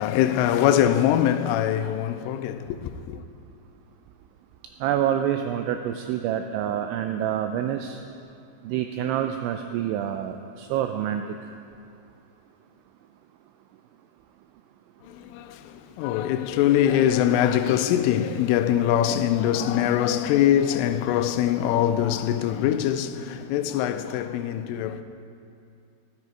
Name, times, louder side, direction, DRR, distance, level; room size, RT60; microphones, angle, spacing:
voice 1, 0.0-3.2 15.1-25.0, left 11 dB, 90° left, 3.1 m, -23 dB
voice 2, 4.8-8.0 8.6-11.2, right 10 dB, 85° right, 2.8 m, -27 dB
14.0 x 13.0 x 4.5 m
omnidirectional pair, 5.6 m